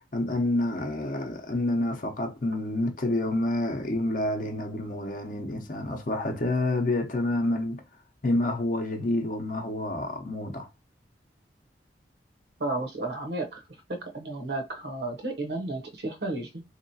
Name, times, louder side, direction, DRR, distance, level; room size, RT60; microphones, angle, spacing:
voice 1, 0.1-7.8 8.2-10.7, left 1 dB, 45° left, 0.7 m, -28 dB
voice 2, 12.6-13.6 13.9-16.6, right 2 dB, 65° right, 0.8 m, -33 dB
3.8 x 2.9 x 2.7 m
head